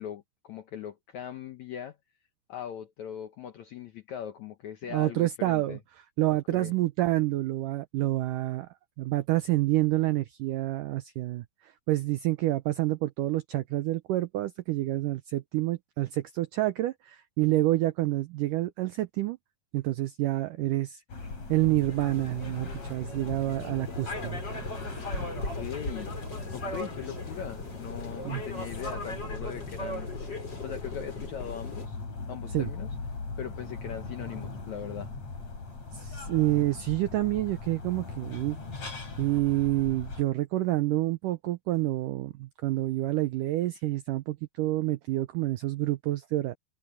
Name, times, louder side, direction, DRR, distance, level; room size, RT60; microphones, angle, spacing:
voice 1, 0.0-2.0 2.5-5.8 6.3-6.7 24.9-26.2 26.5-32.0 32.3-32.9 33.4-35.1, left 9 dB, 75° left, 1.7 m, -40 dB
voice 2, 4.9-5.8 6.2-8.7 9.0-19.4 19.7-21.0 21.5-24.4 28.3-28.4 32.5-32.7 35.9-38.6 39.2-46.5, right 17 dB, 85° right, 1.9 m, -28 dB
sound 1, 21.1-40.2, left 4 dB, 45° left, 6.3 m, -40 dB
sound 2, 21.9-31.9, left 1 dB, 25° left, 5.7 m, -38 dB
omnidirectional pair, 4.6 m